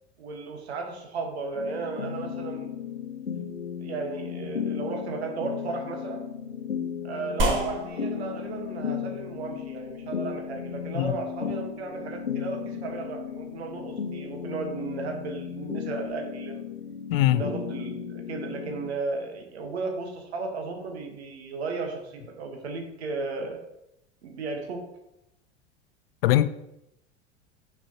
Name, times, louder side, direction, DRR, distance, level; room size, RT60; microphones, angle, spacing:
voice 1, 0.2-2.7 3.8-6.3 7.0-16.7 17.3-23.6 24.2-24.8, right 4 dB, 65° right, 1.4 m, -35 dB
sound 1, 1.5-18.9, left 7 dB, 85° left, 0.9 m, -35 dB
sound 2, 7.4-16.1, right 1 dB, 35° right, 1.6 m, -36 dB
voice 2, 17.1-17.4 26.2-26.5, left 14 dB, 55° left, 0.5 m, -21 dB
6.1 x 6.1 x 2.9 m
figure-of-eight pair, 75°, 34 cm